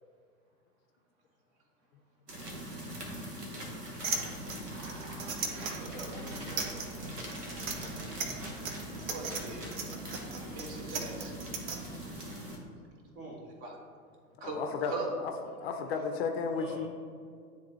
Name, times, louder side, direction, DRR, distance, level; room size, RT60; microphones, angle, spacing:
sound 1, 2.3-12.6, right 1 dB, 80° right, 1.3 m, -42 dB
sound 2, 4.0-11.8, right 5 dB, 60° right, 0.9 m, -37 dB
voice 1, 4.7-5.9 9.1-9.7 10.4-11.3 13.6-13.8 14.4-14.6 14.8-15.1, right 3 dB, 35° right, 1 dB, 1.1 m, -42 dB
voice 2, 5.7-7.1 13.1-13.4 16.6-16.9, right 1 dB, 15° right, -5 dB, 0.4 m, -46 dB
voice 3, 14.4-15.3 15.6-16.9, left 5 dB, 40° left, 5 dB, 0.5 m, -34 dB
9.8 x 3.5 x 3.2 m, 2.2 s
figure-of-eight pair, 95°, 47 cm